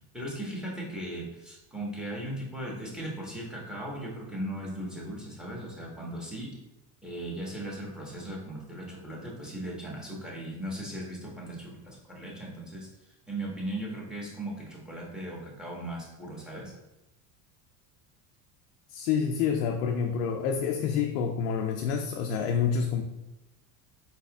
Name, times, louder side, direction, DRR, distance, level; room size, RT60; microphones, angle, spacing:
voice 1, 0.0-6.6 7.0-12.9 13.3-16.7, right 1 dB, ahead, -3 dB, 1.3 m, -38 dB
voice 2, 18.9-23.0, left 6 dB, 80° left, 4 dB, 0.6 m, -28 dB
4.1 x 4.1 x 2.4 m, 0.94 s
supercardioid pair, 110°, 47 cm